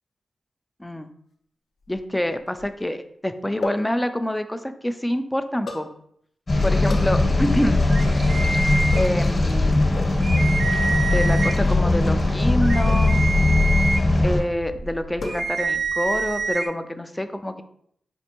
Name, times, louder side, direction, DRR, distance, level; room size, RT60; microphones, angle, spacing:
voice 1, 0.8-1.1 1.9-5.9 6.6-7.8 9.0-9.9 11.1-13.2 14.2-17.6, left 1 dB, 10° left, 9 dB, 0.3 m, -26 dB
sound 1, 1.8-2.8 3.6-3.9 5.7-5.9 6.9-7.2 8.9-9.3 10.0-10.3 11.8-12.1 12.9-13.2 13.8-14.3 15.2-15.8 16.1-16.5, left 3 dB, 65° left, 0.5 m, -35 dB
sound 2, 6.5-14.4, left 2 dB, 40° left, 0.9 m, -20 dB
sound 3, 7.9-9.5 9.9-10.0 10.2-11.8 12.3-16.7, right 3 dB, 65° right, 0.4 m, -28 dB
4.4 x 2.5 x 2.9 m, 0.68 s
cardioid pair, 70°, 0 cm